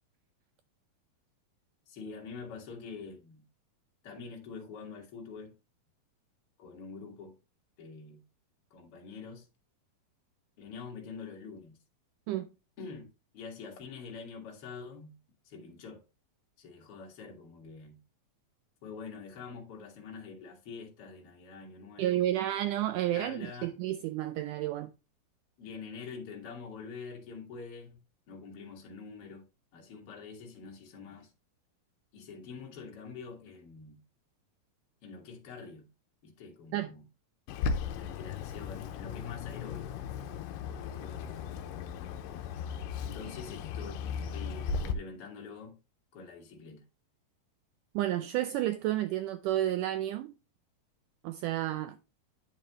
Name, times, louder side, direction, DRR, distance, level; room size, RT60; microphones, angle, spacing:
voice 1, 1.9-3.4 4.0-5.5 6.6-7.4 7.8-8.2 8.7-9.5 10.6-11.8 12.8-13.1 13.3-15.1 15.4-16.0 16.6-18.0 18.8-22.2 23.1-23.7 25.6-28.0 28.3-29.4 29.7-31.3 32.1-34.0 35.0-35.9 36.2-37.0 37.9-39.9 40.7-41.8 43.0-44.0 44.3-45.7 46.1-46.8, left 5 dB, 45° left, 2.5 m, -45 dB
voice 2, 22.0-24.9 36.7-36.9 48.0-50.3 51.2-52.0, right 13 dB, 80° right, 1.9 m, -31 dB
Bird, 37.5-44.9, left 6 dB, 75° left, 2.3 m, -36 dB
9.6 x 5.5 x 3.0 m
omnidirectional pair, 4.1 m